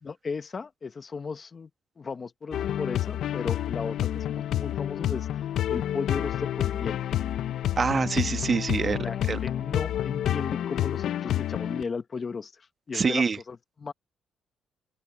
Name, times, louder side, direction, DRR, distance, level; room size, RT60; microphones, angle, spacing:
voice 1, 0.0-1.7 2.0-5.3 5.7-7.0 9.0-13.9, left 5 dB, 40° left, 1.2 m, -35 dB
sound 1, 2.5-11.8, left 12 dB, 75° left, 0.6 m, -29 dB
voice 2, 7.8-9.4 12.9-13.4, right 5 dB, 40° right, 1.2 m, -26 dB
open air
cardioid pair, 90°, 0 cm